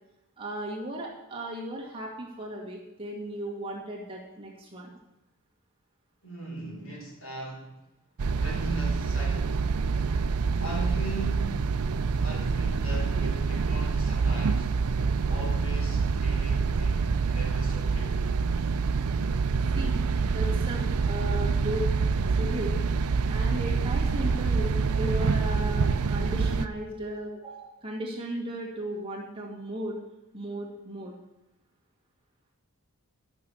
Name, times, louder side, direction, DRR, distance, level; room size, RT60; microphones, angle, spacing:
voice 1, 0.4-4.9 19.7-20.0 20.3-21.9 22.4-22.8 23.3-30.0 30.3-31.1, right 1 dB, 25° right, -3 dB, 2.1 m, -36 dB
voice 2, 6.2-7.7 8.3-9.7 10.6-11.6 12.2-14.8 15.3-18.2, right 1 dB, 65° left, -2 dB, 4.1 m, -39 dB
sound 1, 8.2-26.7, right 4 dB, 80° right, 0.5 m, -26 dB
12.0 x 6.1 x 7.1 m, 0.92 s
head